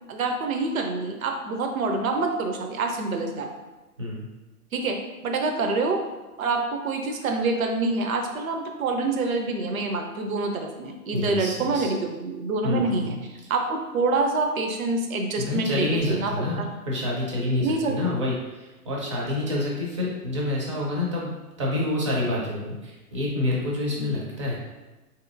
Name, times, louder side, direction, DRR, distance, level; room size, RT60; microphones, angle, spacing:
voice 1, 0.1-3.5 4.7-6.0 6.4-16.7 17.6-18.0 24.0-24.2, right 3 dB, 65° right, 4 dB, 0.6 m, -26 dB
voice 2, 11.1-11.9 12.6-13.2 15.4-21.3 21.6-24.5, left 2 dB, 20° right, -3 dB, 0.4 m, -28 dB
3.7 x 2.8 x 2.5 m, 1.1 s
figure-of-eight pair, 120°, 45 cm